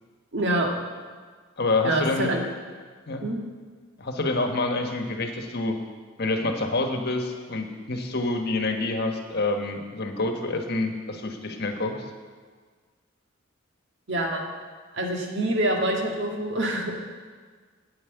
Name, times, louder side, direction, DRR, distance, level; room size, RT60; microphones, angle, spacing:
voice 1, 0.3-0.7 1.8-2.4 3.2-3.4 14.1-14.5 14.9-17.0, right 1 dB, 60° right, 1 dB, 1.7 m, -26 dB
voice 2, 1.6-2.3 3.1-3.2 4.0-5.8 6.2-12.0, left 2 dB, 50° left, 4 dB, 1.3 m, -27 dB
9.7 x 8.9 x 8.0 m, 1.5 s
head